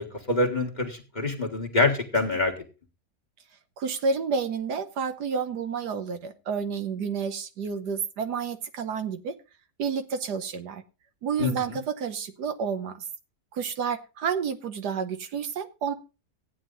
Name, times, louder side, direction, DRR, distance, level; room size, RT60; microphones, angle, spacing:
voice 1, 0.0-2.5 11.4-11.5, left 2 dB, 25° left, 3 dB, 1.6 m, -25 dB
voice 2, 3.8-9.3 9.8-10.8 11.2-13.0 13.5-15.9, right 6 dB, 70° right, 9 dB, 1.5 m, -30 dB
14.0 x 9.3 x 3.9 m, 0.32 s
omnidirectional pair, 1.9 m